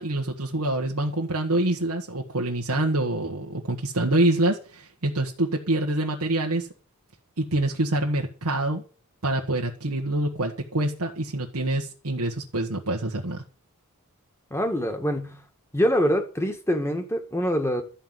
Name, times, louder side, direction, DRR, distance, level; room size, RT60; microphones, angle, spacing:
voice 1, 0.0-6.7 7.4-8.8 9.2-13.4, right 1 dB, 80° right, 1 dB, 1.5 m, -26 dB
voice 2, 14.5-15.4 15.7-17.8, equal, 10° left, 5 dB, 2.1 m, -24 dB
13.0 x 5.7 x 9.3 m, 0.37 s
head